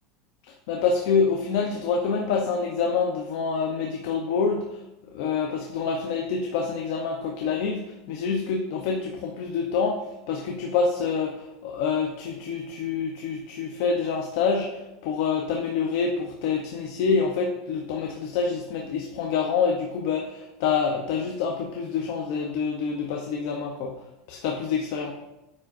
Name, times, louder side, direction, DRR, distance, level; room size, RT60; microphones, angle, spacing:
voice 1, 0.7-4.8 5.1-24.0 24.3-25.1, left 5 dB, 60° left, 1 dB, 0.7 m, -27 dB
9.5 x 5.0 x 2.6 m, 0.95 s
supercardioid pair, 165°, 0 cm